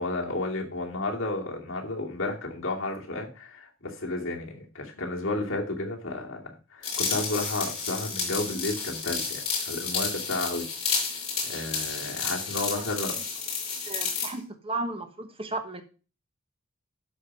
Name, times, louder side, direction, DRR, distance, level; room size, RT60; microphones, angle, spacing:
voice 1, 0.0-10.7 11.4-13.2, left 2 dB, 70° left, -1 dB, 2.6 m, -32 dB
sound 1, 6.8-14.3, left 5 dB, 35° left, 5.1 m, -31 dB
voice 2, 13.9-15.8, right 2 dB, 25° right, 7 dB, 1.2 m, -34 dB
12.5 x 4.8 x 5.5 m, 0.34 s
head